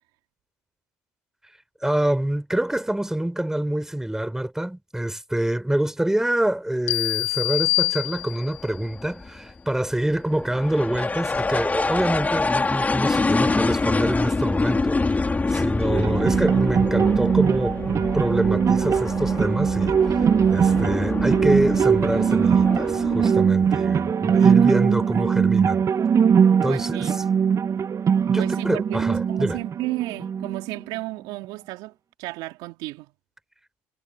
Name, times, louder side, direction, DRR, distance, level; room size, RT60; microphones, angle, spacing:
voice 1, 1.8-20.2 20.5-25.8 26.6-27.0 28.3-29.6, right 1 dB, 5° right, 4.9 m, -26 dB
sound 1, 6.9-8.7, left 29 dB, 80° left, 0.6 m, -25 dB
sound 2, 8.1-24.1, left 3 dB, 20° left, 3.3 m, -26 dB
sound 3, 15.8-30.8, right 7 dB, 45° right, 1.3 m, -21 dB
voice 2, 20.6-21.0 24.3-24.6 26.7-27.2 28.4-33.1, right 20 dB, 75° right, 3.7 m, -33 dB
hypercardioid pair, 65°, 7 cm